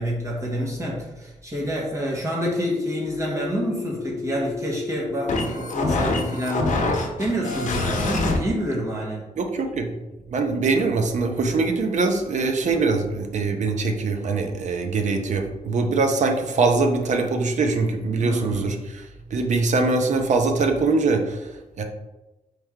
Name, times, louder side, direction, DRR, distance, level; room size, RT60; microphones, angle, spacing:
voice 1, 0.0-6.7 7.2-9.3 10.7-10.9 12.7-13.0 18.2-18.8, equal, 20° right, -4 dB, 1.1 m, -28 dB
sound 1, 2.5-8.4, left 3 dB, 60° left, 0.7 m, -26 dB
voice 2, 9.4-9.9 10.3-19.1 19.3-21.8, right 3 dB, 60° right, 4 dB, 0.6 m, -23 dB
4.3 x 3.2 x 3.6 m, 1.1 s
wide cardioid pair, 165°, 14 cm